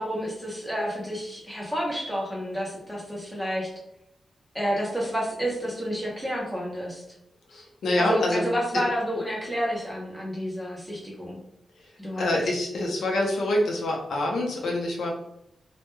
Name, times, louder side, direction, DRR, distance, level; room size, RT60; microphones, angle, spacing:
voice 1, 0.0-3.7 4.5-7.0 8.0-11.4 12.0-12.4, equal, ahead, -4 dB, 0.6 m, -30 dB
voice 2, 7.5-8.4 12.2-15.1, left 1 dB, 85° left, 0 dB, 0.6 m, -26 dB
2.2 x 2.1 x 3.0 m, 0.80 s
wide cardioid pair, 155°, 0 cm